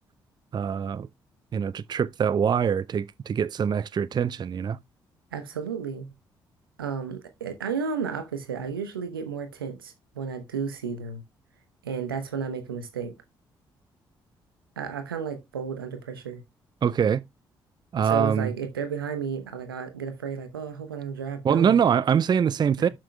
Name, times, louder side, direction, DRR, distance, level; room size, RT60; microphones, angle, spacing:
voice 1, 0.5-1.1 1.5-4.8 16.8-17.2 17.9-18.5 21.4-22.9, right 7 dB, 40° right, 0.5 m, -23 dB
voice 2, 5.3-6.1 6.8-11.2 11.8-13.1 14.8-16.4 17.9-21.8 22.8-22.9, right 6 dB, 90° right, 0.9 m, -33 dB
12.5 x 6.0 x 2.2 m
hypercardioid pair, 40°, 12 cm